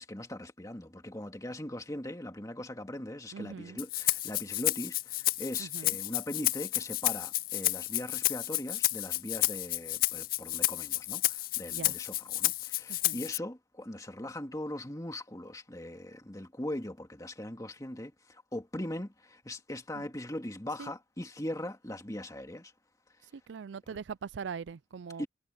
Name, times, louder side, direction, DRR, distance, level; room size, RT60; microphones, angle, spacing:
voice 1, 0.0-22.7 23.9-24.0 25.2-25.3, left 1 dB, 20° left, 2.2 m, -40 dB
voice 2, 3.3-3.8 5.6-6.0 11.7-11.9 12.9-13.2 19.9-20.0 20.8-20.9 23.3-25.2, right 6 dB, 75° right, 0.4 m, -41 dB
Rattle (instrument), 3.8-13.4, left 17 dB, 50° left, 0.4 m, -31 dB
head